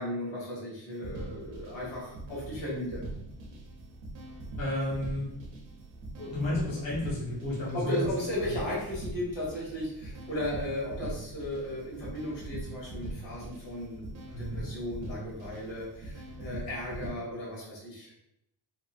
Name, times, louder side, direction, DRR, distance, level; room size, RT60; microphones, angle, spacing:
voice 1, 0.0-3.1 7.7-18.1, left 1 dB, 70° left, -5 dB, 1.4 m, -35 dB
sound 1, 0.9-17.1, right 2 dB, 75° right, 0.6 m, -42 dB
voice 2, 4.6-5.3 6.2-8.1 8.4-8.6 14.3-14.7, left 1 dB, 35° left, -7 dB, 0.8 m, -32 dB
2.9 x 2.4 x 2.4 m, 0.79 s
cardioid pair, 175°, 46 cm